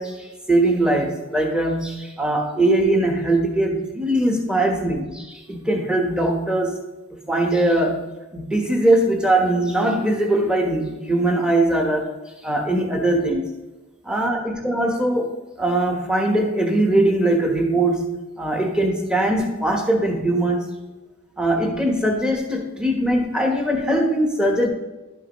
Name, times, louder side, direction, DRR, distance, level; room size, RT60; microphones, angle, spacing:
voice 1, 0.0-6.8 7.3-8.0 8.3-12.1 12.4-13.6 14.0-20.6 21.4-24.7, right 1 dB, 5° right, 1 dB, 1.1 m, -21 dB
11.5 x 5.8 x 3.1 m, 1.1 s
head